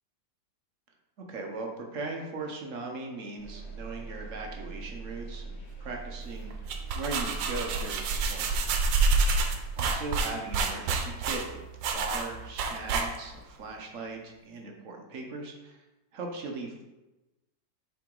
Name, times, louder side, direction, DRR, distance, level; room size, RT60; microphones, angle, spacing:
voice 1, 1.3-8.6 9.8-11.6 11.9-15.8 16.1-16.8, right 3 dB, 55° right, 1 dB, 0.9 m, -39 dB
sound 1, 3.4-9.9, right 4 dB, 75° left, 1.7 m, -42 dB
sound 2, 6.5-13.5, right 4 dB, 85° right, 1.4 m, -28 dB
7.4 x 3.9 x 3.7 m, 1.0 s
omnidirectional pair, 2.0 m